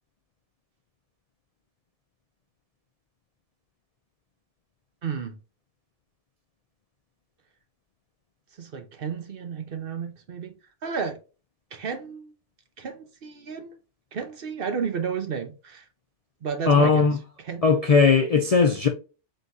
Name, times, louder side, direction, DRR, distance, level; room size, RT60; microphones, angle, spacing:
voice 1, 5.0-5.4 8.6-10.5 10.8-11.2 11.7-12.3 12.8-13.8 14.1-15.8 16.4-17.1 17.4-17.6, right 6 dB, 55° right, 0.9 m, -32 dB
voice 2, 16.7-17.2 17.6-18.9, left 5 dB, 50° left, 0.5 m, -18 dB
3.8 x 3.8 x 2.7 m
omnidirectional pair, 1.2 m